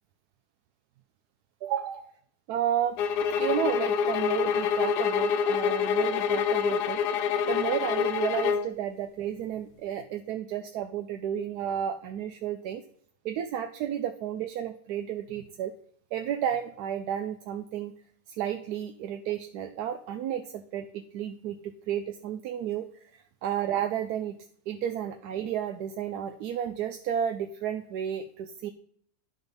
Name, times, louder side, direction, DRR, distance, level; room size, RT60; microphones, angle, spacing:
voice 1, 1.6-2.1 2.5-3.0 3.4-7.0 7.5-12.8 13.2-15.7 16.1-17.9 18.3-23.1 23.4-24.4 24.7-28.7, right 10 dB, 75° right, 7 dB, 1.1 m, -32 dB
sound 1, 3.0-8.7, left 7 dB, 90° left, 1.2 m, -26 dB
10.5 x 4.0 x 5.1 m, 0.63 s
omnidirectional pair, 1.7 m